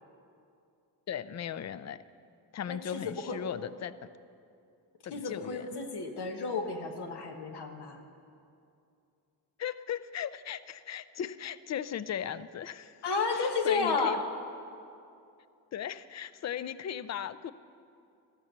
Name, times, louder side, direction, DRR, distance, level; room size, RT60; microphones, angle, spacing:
voice 1, 1.1-2.0 2.5-3.9 5.0-5.7 9.6-13.0 13.3-14.2 15.7-17.5, left 9 dB, 40° left, 16 dB, 0.5 m, -37 dB
voice 2, 2.7-3.4 5.1-8.0 13.0-14.2, left 4 dB, 70° left, 4 dB, 1.3 m, -32 dB
13.5 x 6.1 x 6.8 m, 2.6 s
cardioid pair, 65°, 41 cm